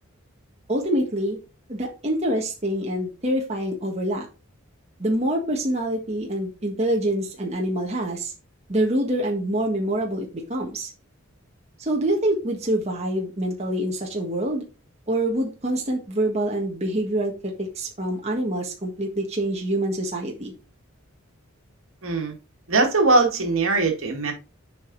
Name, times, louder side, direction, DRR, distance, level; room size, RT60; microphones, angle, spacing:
voice 1, 0.7-1.4 1.7-4.3 5.0-8.3 8.7-10.9 11.8-14.6 15.1-17.3 17.6-20.5, right 1 dB, 30° right, -1 dB, 1.5 m, -25 dB
voice 2, 22.0-22.4 22.7-24.3, right 3 dB, 70° right, 2 dB, 2.1 m, -21 dB
7.9 x 5.0 x 3.9 m, 0.30 s
head